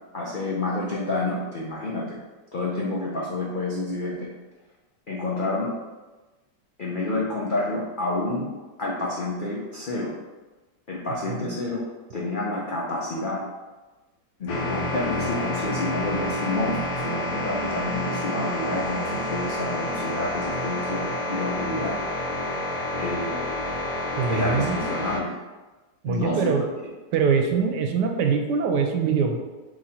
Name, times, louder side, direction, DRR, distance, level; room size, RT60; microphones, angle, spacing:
voice 1, 0.1-2.2 2.5-4.3 5.1-5.7 6.8-8.5 8.8-10.1 10.9-11.8 12.1-13.4 14.4-22.0 23.0-23.4 24.3-25.3 26.1-26.6, left 2 dB, 80° left, -4 dB, 0.4 m, -29 dB
sound 1, 14.5-25.2, left 1 dB, 60° left, 1.1 m, -29 dB
voice 2, 24.2-25.0 26.0-26.6 27.1-29.4, right 6 dB, 80° right, 4 dB, 1.2 m, -23 dB
3.9 x 3.1 x 4.2 m, 1.2 s
omnidirectional pair, 1.8 m